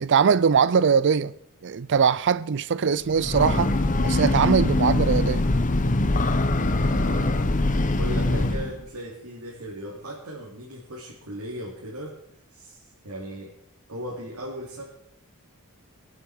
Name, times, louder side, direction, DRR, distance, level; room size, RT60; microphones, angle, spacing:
voice 1, 0.0-1.3 1.6-3.7 4.0-5.4, right 6 dB, 55° right, 0.5 m, -21 dB
Breathing / Train, 3.1-8.8, left 2 dB, 35° left, 0.9 m, -23 dB
voice 2, 6.8-7.4 7.9-12.1 12.5-13.5 13.9-14.8, equal, 75° right, 2.8 m, -37 dB
23.5 x 8.1 x 4.8 m
head